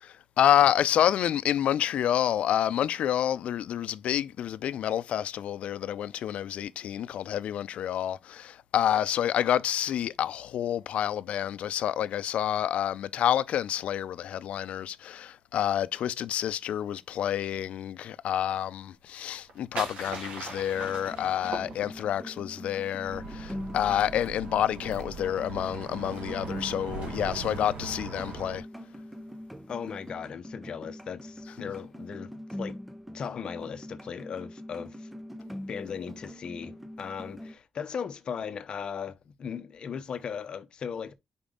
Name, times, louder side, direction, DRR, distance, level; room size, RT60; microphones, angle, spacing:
voice 1, 0.0-28.7 31.6-31.7, left 10 dB, 80° left, 0.4 m, -28 dB
sound 1, 19.2-22.3, right 3 dB, 90° right, 2.7 m, -39 dB
sound 2, 20.7-37.5, equal, 5° right, 0.5 m, -43 dB
Bus, 23.0-28.6, right 5 dB, 65° right, 1.3 m, -40 dB
voice 2, 29.7-32.8 33.1-35.1 35.7-41.1, left 7 dB, 45° left, 0.8 m, -37 dB
5.3 x 5.0 x 3.8 m
wide cardioid pair, 175°, 2 cm